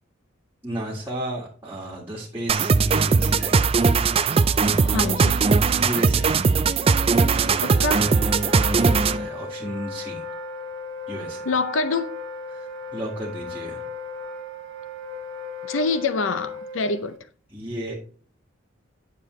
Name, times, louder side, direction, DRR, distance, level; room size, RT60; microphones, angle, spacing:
voice 1, 0.6-3.6 4.7-8.0 8.4-10.2 11.1-11.5 12.5-13.9 17.5-17.9, right 1 dB, 10° right, 1.8 m, -34 dB
sound 1, 2.5-9.3, right 4 dB, 30° right, 0.3 m, -19 dB
voice 2, 4.6-5.4 7.6-8.1 11.4-12.2 15.6-17.2, left 3 dB, 80° left, 0.6 m, -26 dB
Wind instrument woodwind instrument, 7.2-17.2, left 3 dB, 80° right, 1.3 m, -36 dB
9.7 x 6.8 x 3.1 m
head